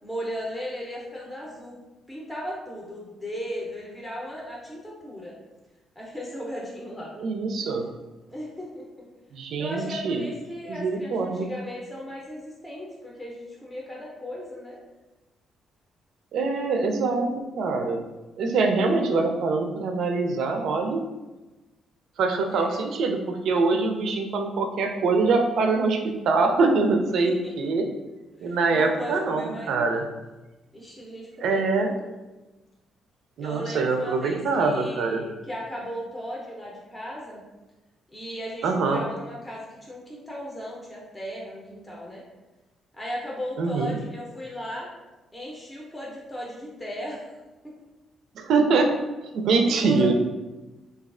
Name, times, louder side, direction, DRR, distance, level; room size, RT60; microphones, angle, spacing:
voice 1, 0.0-5.4 6.0-7.1 7.6-7.7 8.3-8.9 9.6-14.8 22.4-23.0 27.2-27.5 28.4-30.1 30.7-32.1 33.4-37.4 38.1-42.2 42.9-44.9 45.3-47.4 47.6-47.8 49.6-50.1, equal, 15° left, -4 dB, 0.6 m, -36 dB
voice 2, 7.2-7.8 9.3-10.2 10.7-11.5 16.3-18.0 18.4-21.0 22.2-27.9 28.4-30.1 31.4-31.9 33.4-35.2 38.6-39.0 43.6-44.0 48.4-48.9 49.3-50.1, right 3 dB, 75° right, 4 dB, 0.4 m, -24 dB
3.1 x 2.3 x 2.4 m, 1.1 s
cardioid pair, 90°, 0 cm